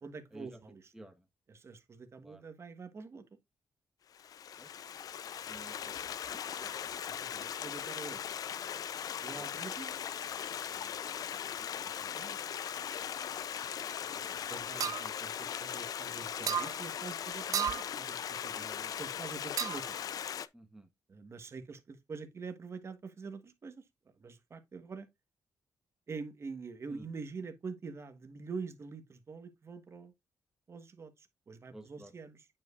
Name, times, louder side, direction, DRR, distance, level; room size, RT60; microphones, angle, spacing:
voice 1, 0.0-0.9 1.5-3.2 6.3-6.7 7.1-8.2 9.2-10.0 12.0-12.4 13.8-20.0 21.1-23.8 24.2-25.1 26.1-30.1 30.7-32.4, right 4 dB, 40° right, 1.4 m, -46 dB
voice 2, 0.9-1.3 2.2-2.5 4.6-4.7 5.4-6.9 9.4-9.6 10.7-11.9 14.3-14.5 16.4-16.5 20.5-20.9 26.9-27.1 31.7-32.1, right 1 dB, 5° right, 1.2 m, -54 dB
Stream, 4.1-20.5, left 9 dB, 65° left, 0.6 m, -39 dB
sound 1, 14.8-15.1 16.5-16.7 17.5-17.9 19.6-19.9, right 9 dB, 60° right, 0.4 m, -32 dB
9.0 x 5.5 x 2.5 m
cardioid pair, 95°, 7 cm